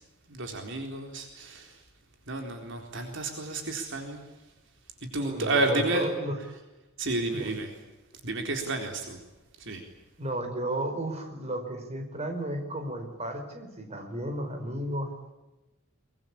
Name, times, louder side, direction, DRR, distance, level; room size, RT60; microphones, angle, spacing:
voice 1, 0.3-1.8 2.3-4.2 5.1-6.1 7.0-7.7 8.2-9.2 9.6-9.8, right 2 dB, 60° right, 4 dB, 3.9 m, -31 dB
voice 2, 5.2-6.3 7.3-7.5 10.2-15.3, right 1 dB, 30° right, 5 dB, 5.3 m, -33 dB
23.5 x 23.0 x 8.7 m, 1.1 s
head